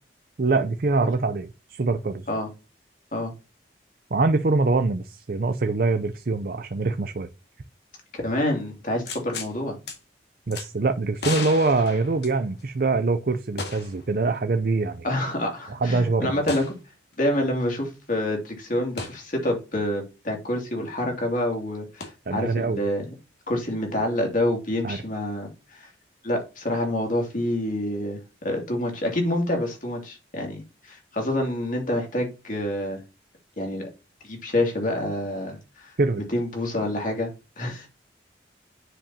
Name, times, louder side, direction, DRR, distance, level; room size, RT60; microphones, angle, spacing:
voice 1, 0.4-2.3 4.1-7.3 10.5-15.1 15.7-16.4 22.3-22.8 24.8-25.0 36.0-36.2, right 3 dB, 50° right, 0.5 m, -24 dB
voice 2, 8.1-9.8 15.0-16.6 17.2-23.1 23.5-25.9 26.2-28.2 28.4-33.0 33.6-33.9 34.2-35.9 36.3-37.3 37.6-37.9, left 1 dB, 45° left, 2.6 m, -27 dB
sound 1, 9.0-9.5 9.9-10.0 10.5-10.7 11.2-12.7 13.6-14.0 14.3-14.4 16.5-16.7 19.0-19.2 22.0-22.1, left 4 dB, 65° left, 1.9 m, -34 dB
9.9 x 5.1 x 2.8 m
head